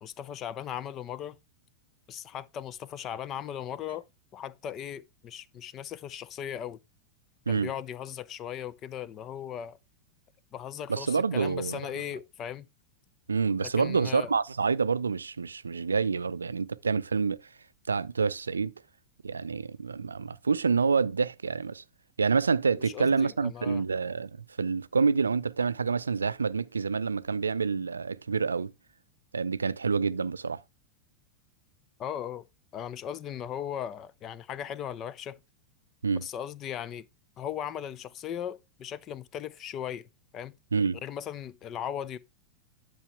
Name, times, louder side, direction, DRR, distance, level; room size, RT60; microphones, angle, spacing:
voice 1, 0.0-1.4 2.1-4.1 4.3-6.8 7.5-9.8 10.5-12.7 13.6-14.3 22.8-23.8 32.0-32.4 32.7-35.4 36.1-37.1 37.4-40.1 40.3-40.6 41.0-42.2, left 9 dB, 30° left, 0.7 m, -38 dB
voice 2, 10.9-11.8 13.3-17.4 17.9-18.7 19.2-21.8 22.2-24.3 24.6-28.7 29.3-30.6 36.0-36.3 40.7-41.0, right 5 dB, 75° right, 0.5 m, -27 dB
11.0 x 6.2 x 3.4 m
figure-of-eight pair, 90°, 0 cm